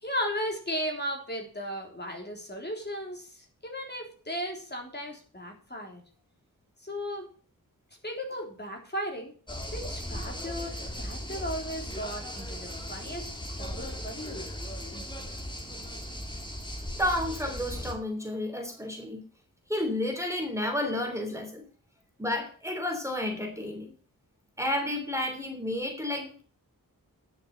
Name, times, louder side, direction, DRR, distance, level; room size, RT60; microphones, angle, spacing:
voice 1, 0.0-6.0 6.8-7.3 8.0-9.3 9.7-13.3 13.6-14.5, equal, 30° left, 2 dB, 3.6 m, -36 dB
sound 1, 9.5-17.9, equal, 15° left, 2.7 m, -37 dB
voice 2, 17.0-19.2 19.7-21.6 22.2-23.9 24.6-26.4, left 1 dB, 10° right, 3 dB, 3.3 m, -31 dB
11.0 x 6.9 x 6.7 m, 0.40 s
wide cardioid pair, 80°, 35 cm